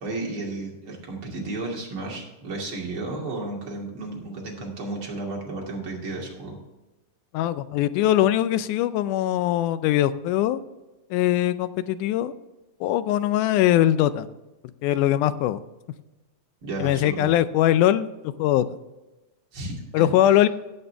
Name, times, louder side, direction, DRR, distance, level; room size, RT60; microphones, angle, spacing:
voice 1, 0.0-6.6 16.6-17.3 19.5-20.4, right 2 dB, 45° right, -2 dB, 3.2 m, -33 dB
voice 2, 7.3-10.6 11.1-12.3 12.8-14.3 14.8-15.6 16.8-18.7 19.9-20.5, left 12 dB, 85° left, 14 dB, 2.1 m, -21 dB
17.5 x 6.9 x 3.4 m, 1.1 s
omnidirectional pair, 3.5 m